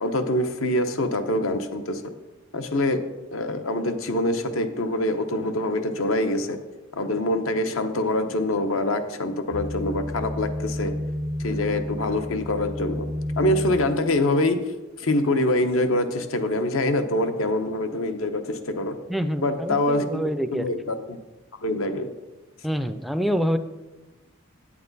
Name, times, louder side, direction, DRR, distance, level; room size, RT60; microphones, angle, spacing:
voice 1, 0.0-2.0 2.5-3.0 3.3-6.6 7.0-10.9 11.4-13.1 13.4-14.6 15.0-18.9 19.4-20.2 20.5-21.2 21.6-22.1, left 1 dB, 65° left, 8 dB, 0.8 m, -25 dB
sound 1, 9.5-13.7, left 1 dB, 85° left, 2.3 m, -30 dB
voice 2, 19.1-20.7 22.6-23.6, equal, ahead, 10 dB, 0.4 m, -26 dB
8.9 x 8.6 x 4.0 m, 1.1 s
head